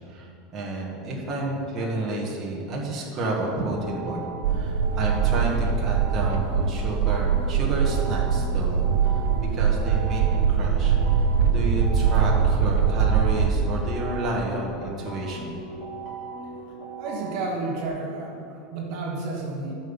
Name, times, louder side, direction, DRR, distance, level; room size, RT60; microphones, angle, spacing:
voice 1, 0.1-9.2 9.5-10.2 10.5-15.6, right 2 dB, 20° right, -3 dB, 1.6 m, -31 dB
sound 1, 3.7-17.9, right 3 dB, 30° left, 1.9 m, -39 dB
sound 2, 4.4-13.5, right 7 dB, 80° right, 0.8 m, -22 dB
voice 2, 16.7-19.7, right 3 dB, 45° right, 0 dB, 1.5 m, -32 dB
14.0 x 5.4 x 7.1 m, 2.7 s
supercardioid pair, 180°, 0 cm